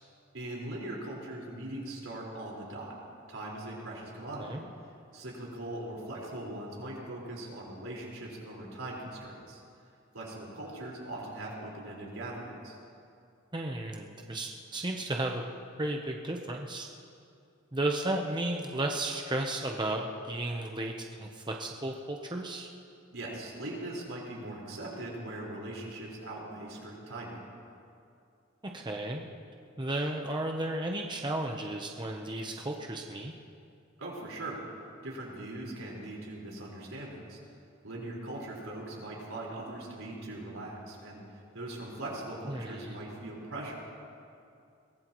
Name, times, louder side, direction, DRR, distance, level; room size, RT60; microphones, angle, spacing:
voice 1, 0.3-2.9 3.3-4.6 5.1-9.6 10.1-12.8 23.1-27.5 34.0-34.6 35.0-37.4 37.8-43.7, right 1 dB, 80° right, -4 dB, 4.7 m, -40 dB
voice 2, 13.5-15.4 15.8-16.9 17.7-20.9 21.2-22.7 28.7-29.2 29.8-33.3 42.5-43.0, right 1 dB, 25° right, 1 dB, 0.9 m, -34 dB
22.5 x 19.5 x 3.1 m, 2.5 s
head